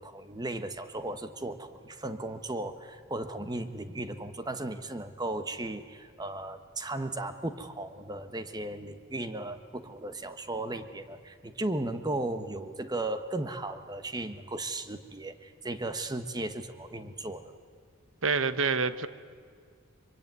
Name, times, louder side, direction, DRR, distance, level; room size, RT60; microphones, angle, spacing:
voice 1, 0.0-17.5, right 2 dB, 20° right, 9 dB, 1.2 m, -36 dB
voice 2, 18.2-19.1, right 4 dB, 75° right, 14 dB, 1.0 m, -27 dB
24.0 x 23.5 x 9.5 m, 2.1 s
head